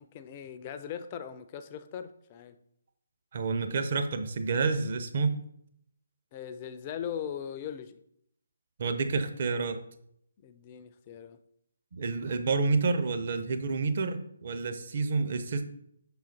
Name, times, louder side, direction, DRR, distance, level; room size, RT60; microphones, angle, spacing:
voice 1, 0.0-2.6 6.3-8.0 10.4-11.4, left 8 dB, 25° left, 10 dB, 0.4 m, -40 dB
voice 2, 3.3-5.3 8.8-9.8 11.9-15.6, right 4 dB, 40° right, 7 dB, 0.7 m, -29 dB
6.1 x 4.0 x 4.1 m, 0.71 s
figure-of-eight pair, 140°, 0 cm